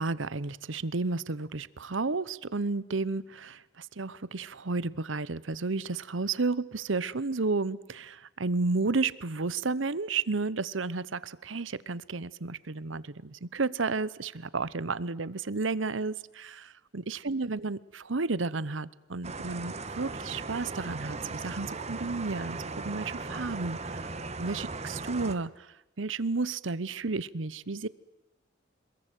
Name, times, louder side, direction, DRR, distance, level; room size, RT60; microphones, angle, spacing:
voice 1, 0.0-24.1 24.4-25.7 26.0-27.9, right 3 dB, 90° right, 1.0 m, -32 dB
sound 1, 19.2-25.3, right 3 dB, 35° right, 1.6 m, -38 dB
27.0 x 21.5 x 9.3 m
head